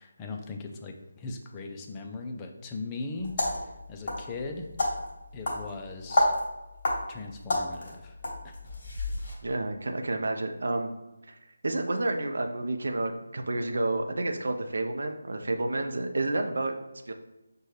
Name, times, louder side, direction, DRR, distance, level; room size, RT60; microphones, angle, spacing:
voice 1, 0.0-3.3 3.6-4.7 5.3-6.4 7.1-8.2 8.4-8.6, left 3 dB, 15° left, 3 dB, 0.4 m, -39 dB
sound 1, 3.2-9.4, left 1 dB, 35° left, 1.2 m, -31 dB
voice 2, 9.4-10.9 11.3-11.4 11.6-16.7 17.1-17.2, right 2 dB, 55° right, 5 dB, 0.5 m, -30 dB
6.2 x 2.2 x 3.2 m, 1.0 s
figure-of-eight pair, 155°, 0 cm